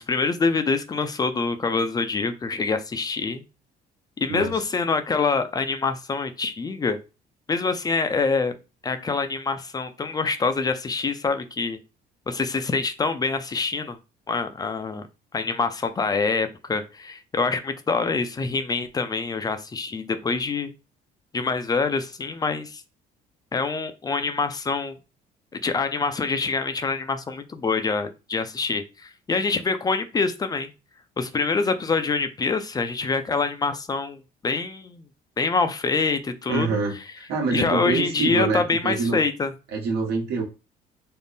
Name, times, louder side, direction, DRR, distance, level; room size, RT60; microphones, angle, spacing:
voice 1, 0.0-3.4 4.2-7.0 7.5-8.5 8.8-11.8 12.3-14.0 14.3-15.0 15.3-20.7 21.3-22.8 23.5-25.0 25.5-30.7 31.2-35.0 35.4-36.7 37.5-39.5, left 4 dB, 25° left, 9 dB, 0.4 m, -25 dB
voice 2, 36.5-39.2 39.7-40.4, right 4 dB, 75° right, 0 dB, 1.1 m, -26 dB
3.6 x 2.0 x 4.0 m, 0.30 s
cardioid pair, 110°, 17 cm